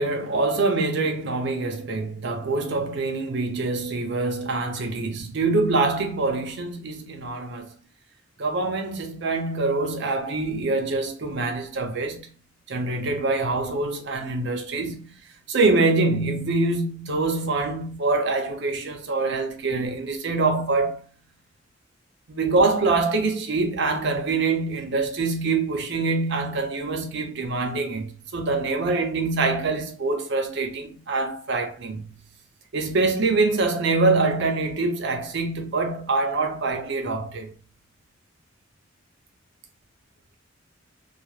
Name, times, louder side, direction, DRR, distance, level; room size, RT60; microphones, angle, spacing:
voice 1, 0.0-7.7 8.4-12.3 12.7-15.1 15.5-21.1 22.3-32.1 32.7-37.5, right 3 dB, 60° right, 0.5 m, -25 dB
2.4 x 2.0 x 3.0 m
head